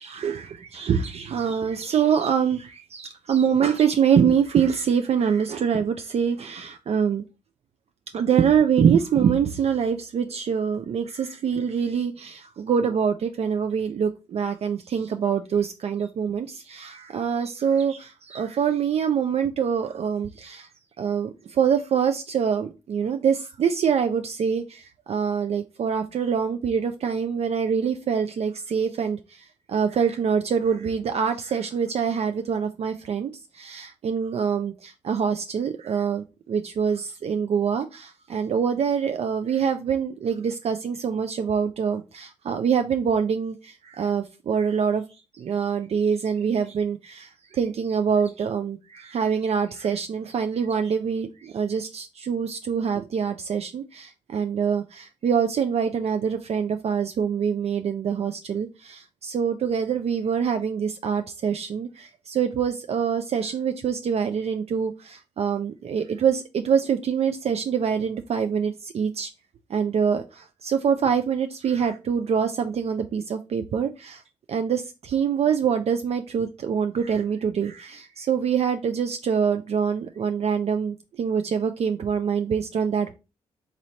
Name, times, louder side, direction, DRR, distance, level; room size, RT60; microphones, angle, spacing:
voice 1, 0.0-7.2 8.1-20.7 21.0-45.0 45.3-69.3 69.7-74.2 74.5-83.2, right 7 dB, 55° right, 7 dB, 0.4 m, -25 dB
4.0 x 3.0 x 2.8 m, 0.28 s
hypercardioid pair, 40°, 13 cm